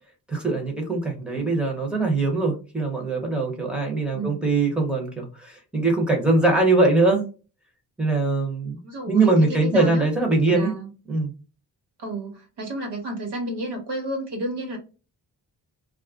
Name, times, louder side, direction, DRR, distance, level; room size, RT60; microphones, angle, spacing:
voice 1, 0.3-7.2 8.0-8.8 9.1-10.7 11.1-11.3, right 3 dB, ahead, 0 dB, 0.8 m, -22 dB
voice 2, 4.1-4.5 8.8-10.0 10.5-10.9 12.0-14.8, right 2 dB, 70° right, 3 dB, 1.2 m, -31 dB
2.4 x 2.1 x 3.5 m, 0.33 s
wide cardioid pair, 140°, 42 cm